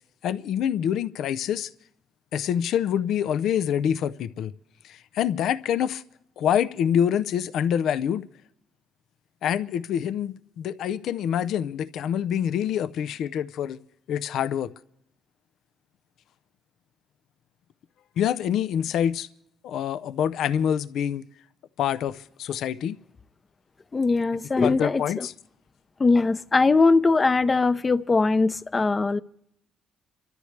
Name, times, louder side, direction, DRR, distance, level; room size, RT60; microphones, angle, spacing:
voice 1, 0.2-1.7 2.3-4.5 4.8-6.0 6.4-8.3 9.4-13.8 14.1-14.7 18.2-19.3 19.6-21.2 21.8-23.0 24.6-25.3, left 9 dB, 75° left, 0.5 m, -26 dB
voice 2, 23.9-25.3 26.0-29.2, left 3 dB, 30° left, 0.6 m, -21 dB
29.0 x 13.5 x 3.3 m
cardioid pair, 90°, 0 cm